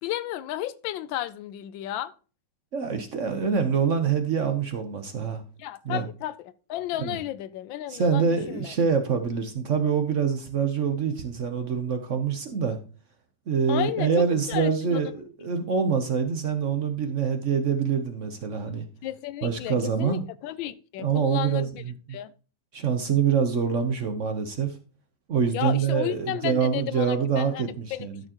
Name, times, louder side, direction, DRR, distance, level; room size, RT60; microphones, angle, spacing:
voice 1, 0.0-2.1 5.6-6.3 6.7-8.7 13.7-15.0 19.0-21.8 22.1-22.3 25.5-28.1, left 13 dB, 85° left, 1.4 m, -33 dB
voice 2, 2.7-5.4 5.8-6.1 7.0-7.2 7.9-12.8 13.5-18.9 19.4-20.2 21.0-22.2 22.7-24.8 25.3-28.2, right 6 dB, 50° right, 1.0 m, -25 dB
12.5 x 6.8 x 2.9 m
omnidirectional pair, 2.0 m